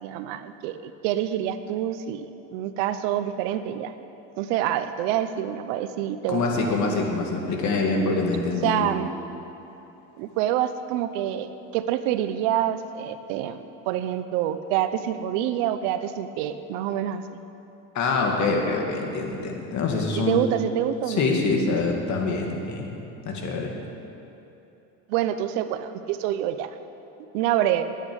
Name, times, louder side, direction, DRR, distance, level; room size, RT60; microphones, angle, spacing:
voice 1, 0.0-3.9 4.4-6.4 8.6-9.1 10.2-13.6 13.9-17.2 20.2-21.2 25.1-26.7 27.3-27.8, right 11 dB, 85° right, 11 dB, 0.8 m, -26 dB
voice 2, 6.3-8.9 17.9-20.4 21.1-23.0 23.3-23.7, left 3 dB, 50° left, 1 dB, 2.5 m, -25 dB
10.5 x 8.6 x 9.9 m, 2.9 s
supercardioid pair, 110°, 37 cm